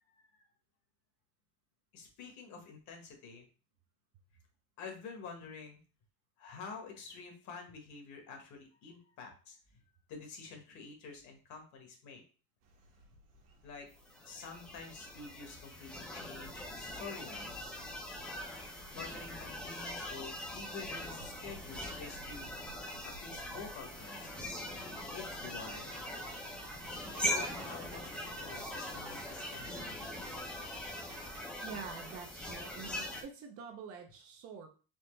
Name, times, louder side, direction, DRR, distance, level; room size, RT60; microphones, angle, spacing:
voice 1, 1.9-3.5 4.8-5.8 6.4-9.8 10.1-12.2 13.6-13.9 14.2-17.7 18.9-22.5 23.0-24.3 25.1-26.0 27.2-30.0 30.6-31.5, left 5 dB, 50° left, 3 dB, 1.3 m, -49 dB
sound 1, 12.6-31.4, right 2 dB, 80° right, 1.4 m, -56 dB
sound 2, 14.0-33.2, left 1 dB, 5° left, 0.6 m, -42 dB
voice 2, 31.6-34.7, right 6 dB, 40° right, 5 dB, 0.6 m, -46 dB
4.3 x 3.3 x 3.2 m, 0.36 s
cardioid pair, 170°, 37 cm